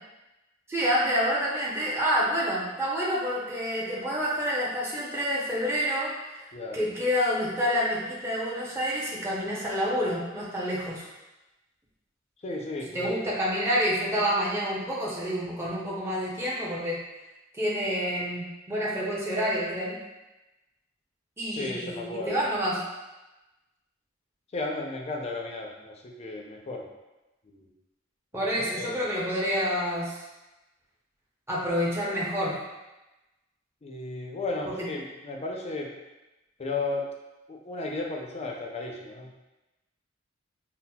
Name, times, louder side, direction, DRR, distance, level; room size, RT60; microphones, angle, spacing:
voice 1, 0.7-11.1 12.9-17.0 17.5-20.0 21.4-22.8 28.3-30.2 31.5-32.6 34.7-34.9, equal, 15° right, -6 dB, 0.6 m, -28 dB
voice 2, 6.5-6.9 12.4-13.3 21.5-22.4 24.5-26.9 27.4-27.7 28.3-29.1 33.8-35.9 36.6-37.0 37.5-39.3, left 2 dB, 35° left, 1 dB, 0.5 m, -34 dB
5.7 x 2.0 x 2.2 m, 1.0 s
head